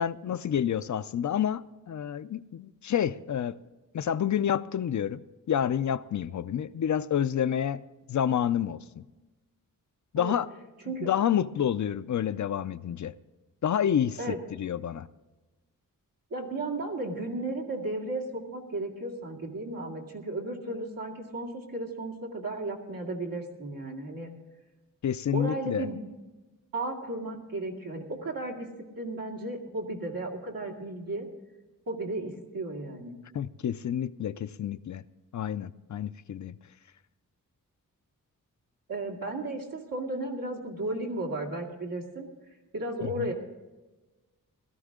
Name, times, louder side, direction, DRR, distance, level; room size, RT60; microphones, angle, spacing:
voice 1, 0.0-3.6 3.9-5.2 5.5-7.8 8.1-9.0 10.1-10.5 11.0-13.1 13.6-15.1 25.0-25.9 33.3-35.0 35.3-36.6 43.2-43.3, left 9 dB, 60° left, 0.5 m, -29 dB
voice 2, 16.3-24.3 25.3-26.0 26.7-28.7 29.0-31.3 31.9-33.2 38.9-42.3 42.7-43.3, right 2 dB, 90° right, 2.4 m, -34 dB
16.5 x 13.5 x 3.7 m
wide cardioid pair, 130°, 33 cm